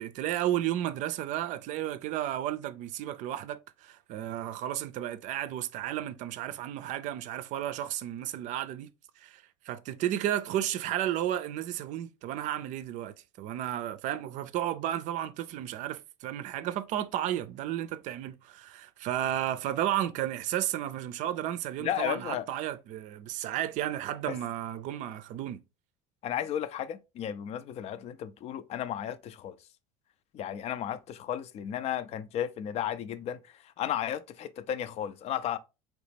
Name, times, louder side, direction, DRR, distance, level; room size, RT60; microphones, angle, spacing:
voice 1, 0.0-8.9 9.2-25.6, right 12 dB, 55° right, 0.5 m, -33 dB
voice 2, 21.8-22.4 24.3-24.4 26.2-29.5 30.3-33.4 33.8-35.6, left 10 dB, 45° left, 0.5 m, -34 dB
4.1 x 3.0 x 3.4 m
supercardioid pair, 105°, 15 cm